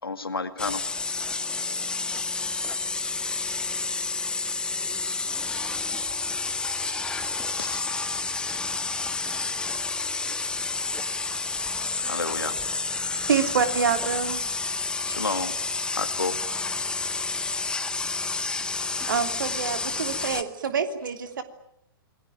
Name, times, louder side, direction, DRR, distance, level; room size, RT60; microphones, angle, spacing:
voice 1, 0.0-0.8 3.2-3.4 7.5-8.1 12.0-12.6 15.1-15.6 15.9-16.6, left 4 dB, 75° left, 10 dB, 2.2 m, -31 dB
sound 1, 0.6-20.4, left 3 dB, 5° left, 1.5 m, -30 dB
voice 2, 4.6-6.4 8.1-9.7, left 9 dB, 30° left, 5 dB, 3.9 m, -54 dB
voice 3, 13.3-14.4 19.1-21.4, right 6 dB, 60° right, 8 dB, 3.1 m, -26 dB
28.0 x 21.5 x 9.1 m, 0.76 s
figure-of-eight pair, 110°, 12 cm